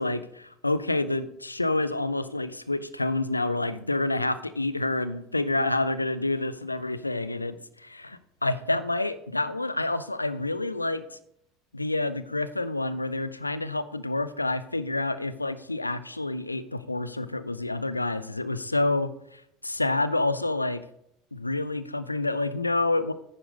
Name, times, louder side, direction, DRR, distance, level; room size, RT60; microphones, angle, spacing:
voice 1, 0.0-11.0 11.7-20.8 21.3-23.1, left 2 dB, 85° left, 14 dB, 0.5 m, -28 dB
9.5 x 8.7 x 5.1 m, 0.76 s
figure-of-eight pair, 70°, 0 cm